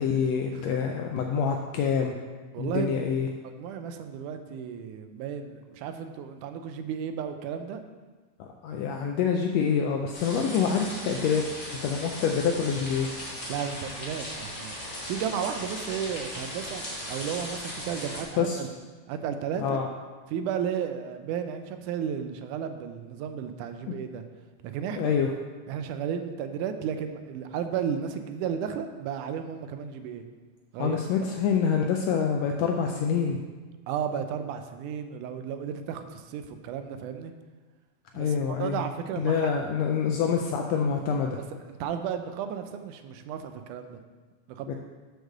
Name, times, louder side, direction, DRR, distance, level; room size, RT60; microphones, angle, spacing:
voice 1, 0.0-2.1 2.6-3.3 8.4-11.4 11.8-13.1 18.4-18.6 19.6-19.9 25.0-25.3 30.8-33.4 38.1-38.8 39.2-41.4 44.7-44.8, left 6 dB, 80° left, 3 dB, 1.5 m, -26 dB
voice 2, 2.5-3.0 3.4-7.8 13.5-14.7 15.1-18.7 19.1-19.8 20.3-24.2 24.6-25.2 25.7-30.3 30.7-31.0 33.9-37.3 38.1-39.5 41.6-44.0 44.5-44.7, right 8 dB, 90° right, 8 dB, 2.1 m, -33 dB
sound 1, 10.1-18.2, left 1 dB, 25° left, 1.2 m, -38 dB
6.4 x 4.8 x 6.5 m, 1.4 s
omnidirectional pair, 3.5 m